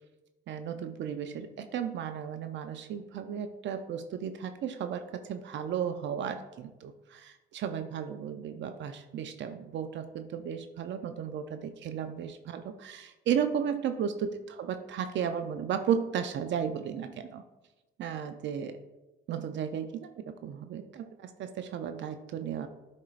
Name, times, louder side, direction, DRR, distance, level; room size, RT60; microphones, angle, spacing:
voice 1, 0.5-17.4 18.0-18.8 19.3-22.7, right 8 dB, 65° right, 8 dB, 0.5 m, -34 dB
10.5 x 4.5 x 2.5 m, 1.1 s
cardioid pair, 90°, 20 cm